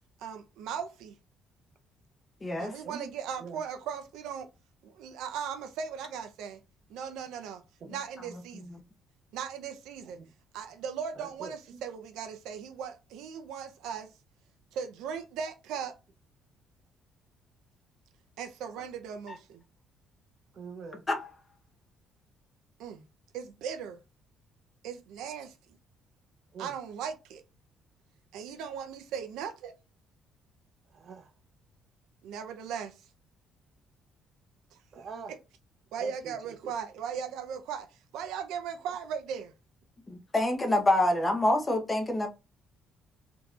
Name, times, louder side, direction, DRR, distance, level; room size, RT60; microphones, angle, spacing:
voice 1, 0.2-1.2 2.6-4.5 4.8-6.6 6.9-7.6 7.9-8.7 9.3-10.2 10.5-14.1 14.7-15.9 18.4-19.6 22.8-23.1 23.3-24.0 24.8-25.5 26.6-27.4 28.3-29.7 32.2-33.0 34.7-34.8 35.9-37.9 38.1-39.5, right 7 dB, 85° right, 0.6 m, -38 dB
voice 2, 2.4-2.7 7.9-8.0 8.5-8.8 19.3-19.4 21.1-21.2 40.1-42.3, left 1 dB, 20° left, 0.8 m, -27 dB
voice 3, 11.1-11.8 20.5-21.0 26.5-26.7 30.9-31.3 34.9-35.3 36.0-36.7, right 5 dB, 50° right, 0.7 m, -44 dB
3.8 x 2.8 x 2.4 m
cardioid pair, 120°, 0 cm